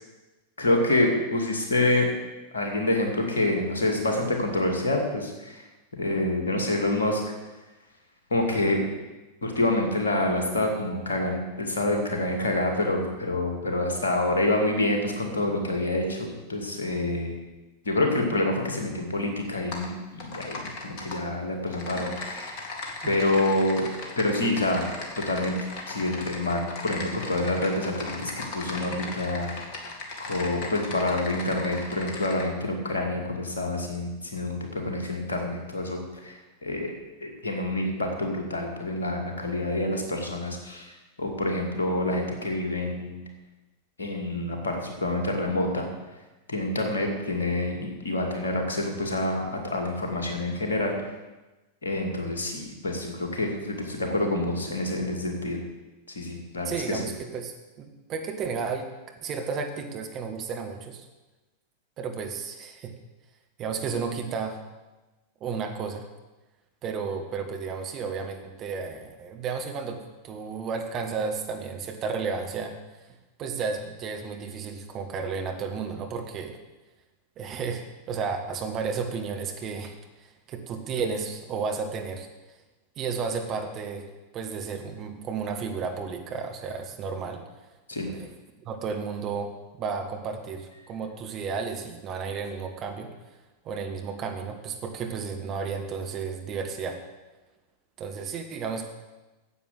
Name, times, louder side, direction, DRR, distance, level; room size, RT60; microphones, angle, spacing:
voice 1, 0.6-2.1 2.5-5.6 6.0-7.2 8.3-8.8 9.4-17.4 17.8-22.6 23.1-23.9 24.2-24.9 25.2-25.5 25.9-29.5 30.2-36.9 37.2-43.2 44.0-45.9 46.5-50.9 51.8-55.6 56.1-57.0 87.9-88.1, left 2 dB, 70° left, 2 dB, 2.5 m, -27 dB
Typing, 19.7-19.9 20.2-21.2 21.7-32.4, left 3 dB, 45° left, 2.2 m, -37 dB
voice 2, 56.6-58.9 59.2-61.0 62.0-62.9 63.6-64.6 65.4-66.1 66.8-72.8 73.4-76.6 77.4-82.3 83.0-84.1 84.3-87.4 88.1-88.3 88.6-93.1 93.6-97.0 98.0-98.9, right 5 dB, 35° right, 5 dB, 1.6 m, -33 dB
9.9 x 8.1 x 7.8 m, 1.1 s
figure-of-eight pair, 90°, 0 cm